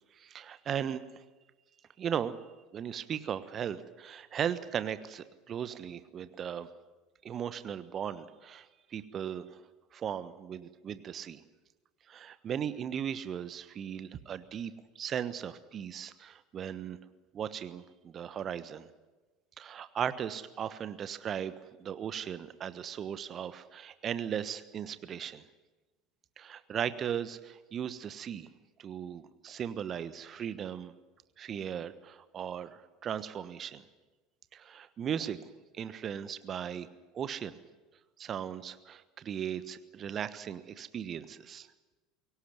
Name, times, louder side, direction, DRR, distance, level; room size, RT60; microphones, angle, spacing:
voice 1, 0.2-1.2 2.0-2.3 2.7-6.7 7.2-9.6 9.9-11.4 12.1-17.0 17.3-18.9 19.6-25.4 26.4-28.5 28.8-30.9 31.4-33.8 34.5-35.4 35.7-36.9 37.1-37.6 38.2-41.7, right 8 dB, 35° right, 14 dB, 1.2 m, -37 dB
23.0 x 18.0 x 9.4 m, 1.2 s
figure-of-eight pair, 70°, 0 cm